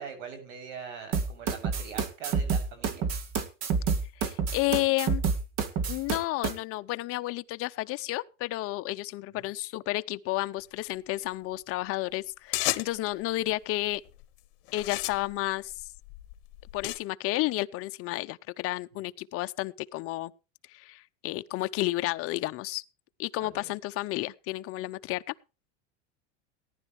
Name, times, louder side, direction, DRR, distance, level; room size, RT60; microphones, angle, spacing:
voice 1, 0.0-3.0 9.4-9.5 23.4-23.7, right 6 dB, 75° right, 7.5 m, -42 dB
sound 1, 1.1-6.5, right 5 dB, 45° right, 2.2 m, -28 dB
voice 2, 4.2-5.2 5.9-14.0 14.7-15.9 16.7-20.3 20.7-22.8 23.2-25.3, left 18 dB, 40° left, 0.8 m, -31 dB
sound 2, 12.5-13.1 13.9-14.2 14.7-17.0, left 19 dB, 60° left, 1.3 m, -33 dB
18.5 x 11.0 x 3.2 m
supercardioid pair, 140°, 36 cm